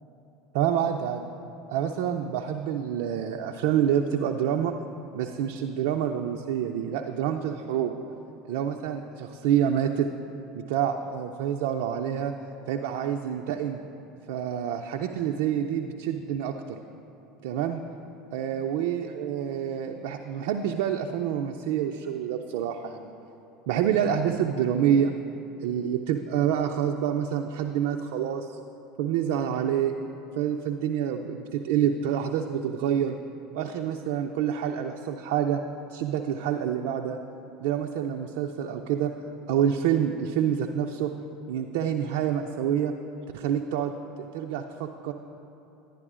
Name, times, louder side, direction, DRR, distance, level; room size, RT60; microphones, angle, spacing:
voice 1, 0.5-1.3 1.7-4.7 5.1-7.9 8.5-10.1 10.5-12.3 12.7-13.8 14.3-16.8 17.4-17.8 18.3-23.1 23.7-25.1 25.6-28.6 29.0-29.9 30.4-33.2 33.5-35.6 35.9-37.2 37.6-39.1 39.5-41.1 41.5-42.9 43.3-45.1, right 9 dB, 70° right, 3 dB, 0.3 m, -27 dB
10.5 x 10.5 x 2.5 m, 2.9 s
hypercardioid pair, 80°, 0 cm